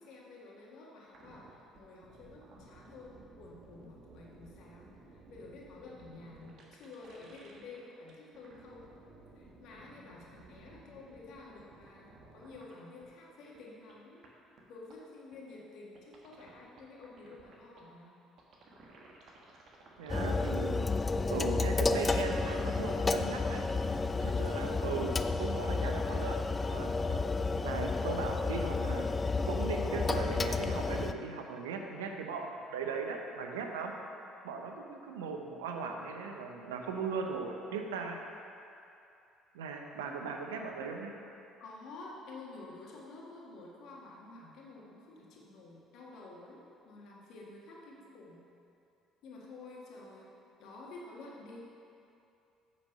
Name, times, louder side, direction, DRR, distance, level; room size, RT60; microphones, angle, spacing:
voice 1, 0.0-8.9 9.4-14.2 14.7-18.1 41.6-48.4 49.2-50.3 50.6-51.6, left 3 dB, 60° left, -3 dB, 1.7 m, -50 dB
sound 1, 1.1-7.8 8.1-12.7 13.0-13.1 13.5-13.6 13.9-14.0 14.2-14.3 14.6-14.7 14.9-15.0 15.3-15.4 16.0-17.8 18.4-20.1, right 2 dB, 55° right, 1.4 m, -56 dB
voice 2, 20.0-20.8 21.3-23.7 24.2-26.4 26.7-27.2 27.6-29.1 29.5-33.9 34.4-38.2 39.5-41.1, right 5 dB, 80° right, 3 dB, 0.7 m, -38 dB
sound 2, 20.1-31.1, left 3 dB, 25° left, 0.4 m, -31 dB
8.2 x 6.3 x 5.4 m, 2.7 s
hypercardioid pair, 55°, 0 cm